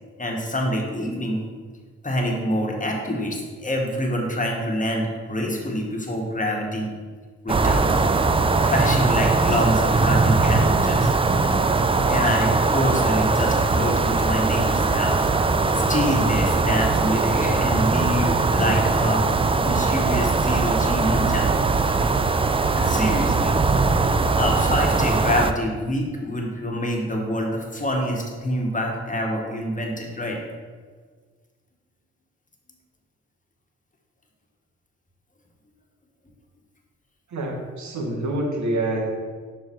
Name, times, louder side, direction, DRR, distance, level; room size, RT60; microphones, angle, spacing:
voice 1, 0.2-1.4 2.0-6.9 7.4-8.0 8.6-11.1 12.1-15.3 15.9-19.3 19.6-21.5 22.7-23.6 24.3-30.4, equal, 25° left, 1 dB, 1.6 m, -26 dB
sound 1, 7.5-25.5, right 3 dB, 15° right, 0.4 m, -20 dB
voice 2, 37.3-39.1, right 1 dB, 60° right, 0 dB, 1.6 m, -26 dB
5.8 x 4.6 x 4.6 m, 1.5 s
hypercardioid pair, 45°, 33 cm